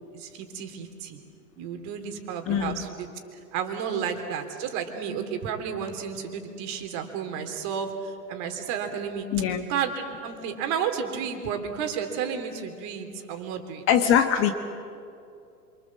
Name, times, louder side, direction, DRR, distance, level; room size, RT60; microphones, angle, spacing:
voice 1, 0.1-1.2 1.6-3.1 3.5-9.3 9.7-13.8, right 7 dB, 35° right, 5 dB, 3.4 m, -32 dB
voice 2, 2.5-2.8 9.3-9.6 13.9-14.5, left 9 dB, 25° left, 7 dB, 1.3 m, -22 dB
27.0 x 25.5 x 7.5 m, 2.5 s
hypercardioid pair, 135°, 50 cm